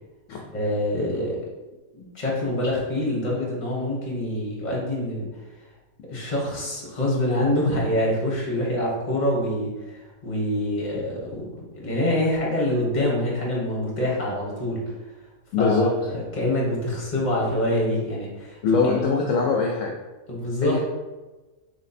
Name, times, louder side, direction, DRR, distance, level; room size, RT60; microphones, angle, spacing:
voice 1, 0.5-1.4 1.9-5.3 6.1-11.5 11.8-15.0 15.6-19.0 20.3-20.8, left 1 dB, 30° left, -3 dB, 1.3 m, -26 dB
voice 2, 15.5-15.9 18.6-19.9 20.6-20.8, left 4 dB, 70° left, 0 dB, 0.9 m, -22 dB
3.4 x 3.1 x 4.1 m, 1.2 s
omnidirectional pair, 1.5 m